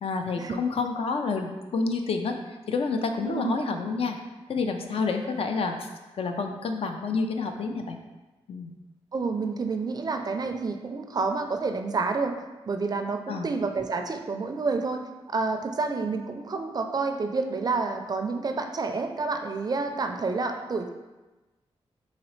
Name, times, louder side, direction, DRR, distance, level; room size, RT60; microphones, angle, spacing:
voice 1, 0.0-2.4 2.7-4.2 4.5-5.9 6.2-8.0 8.5-8.7 13.3-13.5, left 4 dB, 65° left, 5 dB, 0.4 m, -28 dB
voice 2, 3.2-3.6 9.1-20.9, right 4 dB, 40° right, 5 dB, 0.4 m, -29 dB
4.0 x 2.8 x 3.1 m, 1.1 s
cardioid pair, 80°, 10 cm